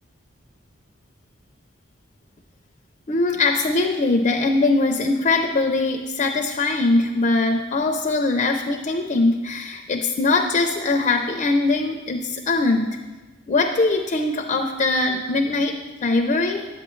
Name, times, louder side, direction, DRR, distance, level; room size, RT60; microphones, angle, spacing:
voice 1, 3.1-13.0 13.5-16.7, left 3 dB, 40° left, 4 dB, 0.4 m, -21 dB
9.7 x 8.2 x 3.1 m, 1.3 s
head